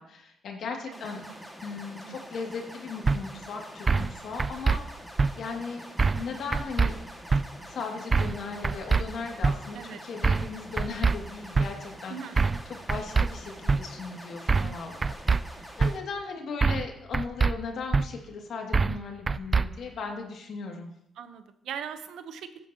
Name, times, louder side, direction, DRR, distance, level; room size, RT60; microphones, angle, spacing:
voice 1, 0.0-1.2 1.6-4.8 5.4-5.8 6.1-7.0 7.6-15.0 15.3-20.9, left 4 dB, 65° left, 1 dB, 2.5 m, -37 dB
sound 1, 0.9-16.0, equal, 5° right, 2.1 m, -45 dB
sound 2, 3.1-3.2 3.9-4.1 4.4-4.8 5.2-5.3 6.0-6.3 6.5-6.9 7.3-7.4 8.1-8.4 8.6-9.0 9.4-9.6 10.2-10.5 10.8-11.1 11.5-11.7 12.4-12.6 12.9-13.3 13.7-13.8 14.5-14.8 15.0-15.4 15.8-15.9 16.6-16.9 17.1-17.5 17.9-18.0 18.7-19.0 19.3-19.6, right 4 dB, 30° right, 0.3 m, -23 dB
voice 2, 12.1-12.4 21.2-22.7, right 8 dB, 75° right, 10 dB, 0.9 m, -40 dB
15.0 x 8.8 x 3.0 m, 0.78 s
cardioid pair, 90°, 0 cm